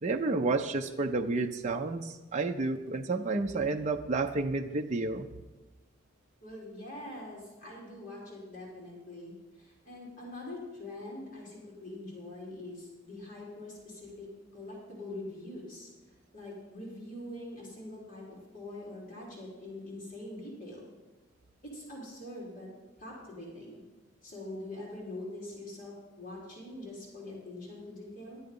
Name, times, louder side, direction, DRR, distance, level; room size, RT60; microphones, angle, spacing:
voice 1, 0.0-5.3, right 3 dB, 35° right, 4 dB, 0.5 m, -30 dB
voice 2, 6.4-14.3 14.5-15.9 16.3-20.9 21.6-22.7 23.0-23.8 24.2-28.4, left 1 dB, 40° left, -4 dB, 3.5 m, -44 dB
11.5 x 9.5 x 5.3 m, 1.1 s
head